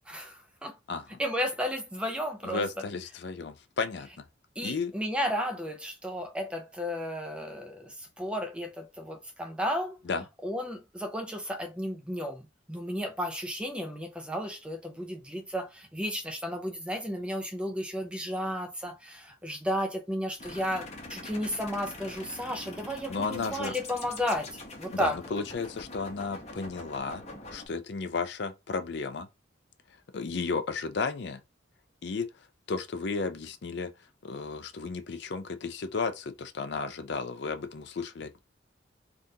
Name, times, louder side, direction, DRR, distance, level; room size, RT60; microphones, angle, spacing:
voice 1, 0.1-0.8 1.2-2.7 4.6-10.0 10.4-25.2, equal, 5° right, 0.5 m, -33 dB
voice 2, 0.9-1.2 2.4-4.2 4.6-4.9 10.1-10.2 23.1-23.7 24.9-27.2 27.5-29.3 30.1-31.4 32.0-32.3 32.7-33.9 34.2-38.4, left 4 dB, 60° left, 0.4 m, -33 dB
sound 1, 20.4-27.7, left 2 dB, 35° left, 0.8 m, -44 dB
3.6 x 2.5 x 2.7 m
head